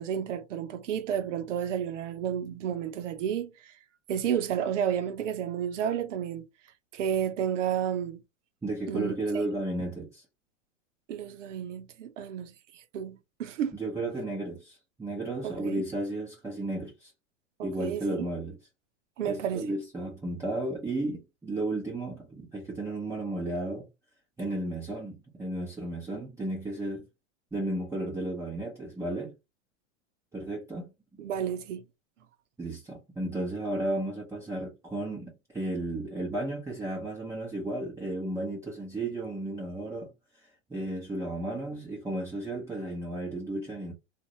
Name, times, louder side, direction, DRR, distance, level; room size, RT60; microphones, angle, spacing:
voice 1, 0.0-3.7 4.1-6.4 6.9-8.2 8.9-9.4 11.1-13.8 15.4-15.8 17.6-18.3 19.2-19.7 31.2-31.8, right 9 dB, 80° right, 0.8 m, -31 dB
voice 2, 8.6-10.2 13.7-17.1 17.6-18.6 19.2-23.9 24.4-27.1 27.5-29.3 30.3-30.9 32.6-40.1 40.4-43.9, right 2 dB, 10° right, 1.0 m, -33 dB
2.8 x 2.6 x 2.8 m
hypercardioid pair, 115°, 37 cm